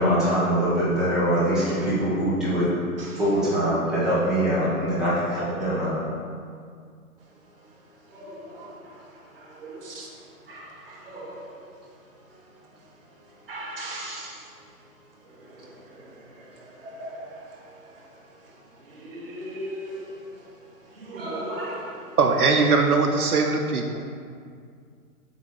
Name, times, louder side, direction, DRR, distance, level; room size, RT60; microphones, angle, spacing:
voice 1, 0.0-2.7 3.2-6.0, equal, ahead, 1.5 m, -23 dB
voice 2, 8.2-8.7 9.6-10.1 10.5-11.4 13.5-14.3 16.8-17.3 19.1-20.1 21.1-21.9, right 1 dB, 40° right, 1.5 m, -36 dB
voice 3, 22.2-24.0, right 4 dB, 75° right, 0.9 m, -21 dB
8.3 x 3.5 x 6.5 m
hypercardioid pair, 155°, 45 cm